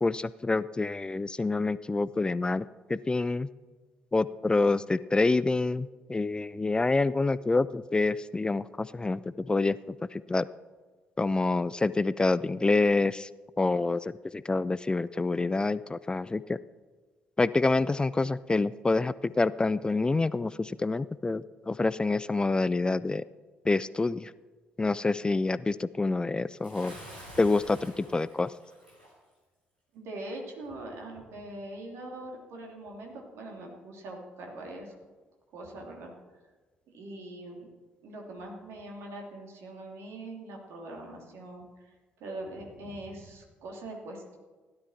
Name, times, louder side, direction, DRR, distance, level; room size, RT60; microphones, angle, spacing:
voice 1, 0.0-3.5 4.1-10.5 11.2-13.3 13.6-16.6 17.4-23.2 23.7-24.3 24.8-26.9 27.4-28.5, left 3 dB, 15° left, 18 dB, 0.4 m, -27 dB
Bathtub (filling or washing) / Splash splatter, 26.6-29.1, equal, 85° right, 3.2 m, -48 dB
voice 2, 29.9-34.9 35.5-36.1 36.9-37.7 38.0-41.9 42.2-44.4, right 1 dB, 55° right, 0 dB, 2.9 m, -42 dB
16.0 x 11.5 x 4.3 m, 1.3 s
figure-of-eight pair, 45°, 5 cm